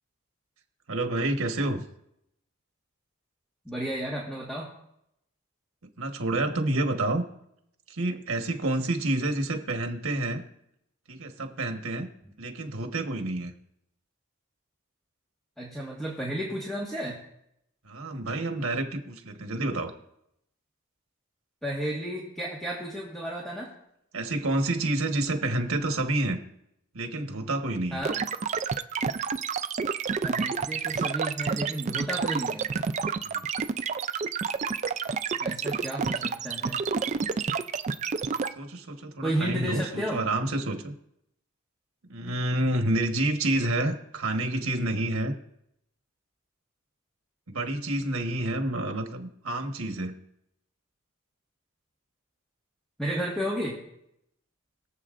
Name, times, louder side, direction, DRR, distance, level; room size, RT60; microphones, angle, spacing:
voice 1, 0.9-1.8 6.0-7.2 7.9-10.4 11.1-12.1 12.4-13.5 17.8-19.9 24.1-26.4 26.9-28.0 33.2-33.4 38.6-40.9 42.1-45.4 47.5-50.1, right 1 dB, 80° right, 4 dB, 1.3 m, -29 dB
voice 2, 3.6-4.7 15.6-17.2 21.6-23.7 27.9-28.2 30.2-32.7 35.4-36.8 39.2-40.2 53.0-53.8, right 1 dB, ahead, -5 dB, 1.5 m, -32 dB
sound 1, 28.0-38.5, right 5 dB, 30° right, 0.3 m, -29 dB
22.5 x 7.5 x 2.5 m, 0.78 s
head